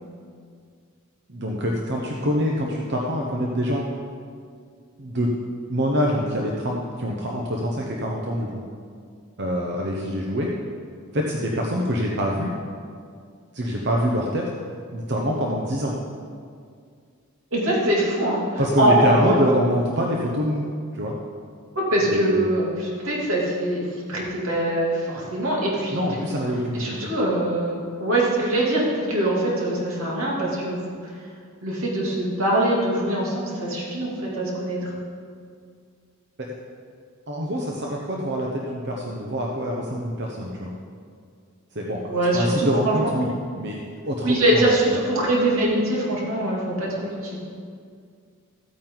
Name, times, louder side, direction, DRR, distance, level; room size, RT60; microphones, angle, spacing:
voice 1, 1.3-3.9 5.0-5.3 5.7-8.6 9.4-10.5 11.1-12.5 13.5-14.5 14.9-15.9 18.6-20.6 20.9-21.2 22.0-22.5 25.9-27.1 37.3-40.7 41.7-44.6, equal, 50° right, -2 dB, 1.0 m, -25 dB
voice 2, 17.5-19.2 21.7-26.0 26.7-31.1 31.6-34.9 42.1-43.1 44.2-47.4, right 1 dB, 75° right, -5 dB, 2.9 m, -23 dB
14.5 x 8.9 x 4.0 m, 2.2 s
head